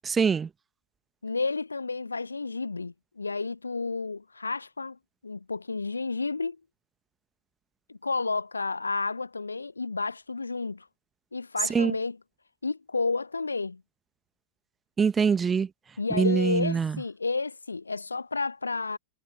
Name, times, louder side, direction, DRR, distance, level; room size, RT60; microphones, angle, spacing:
voice 1, 0.0-0.5 11.7-11.9 15.0-15.7 16.1-16.9, right 6 dB, 20° right, 1.2 m, -24 dB
voice 2, 1.2-5.0 5.2-6.6 7.9-10.9 11.3-12.2 12.6-13.8 16.0-19.0, left 4 dB, 80° left, 0.8 m, -31 dB
figure-of-eight pair, 90°, 0 cm